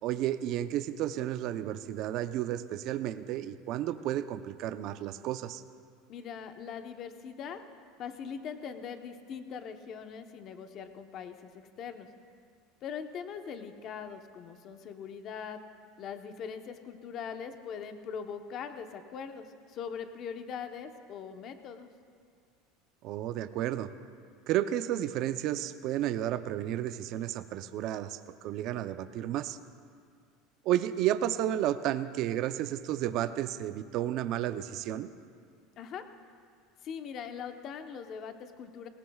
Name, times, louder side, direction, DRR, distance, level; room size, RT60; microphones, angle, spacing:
voice 1, 0.0-5.6 23.0-23.9 24.5-29.6 30.6-35.1, right 12 dB, 55° right, 11 dB, 0.6 m, -32 dB
voice 2, 6.1-7.6 8.0-11.5 11.8-12.1 12.8-15.6 16.0-21.9 35.8-36.0 36.8-38.9, left 7 dB, 45° left, 7 dB, 1.0 m, -41 dB
20.0 x 18.5 x 2.4 m, 2.1 s
supercardioid pair, 120°, 0 cm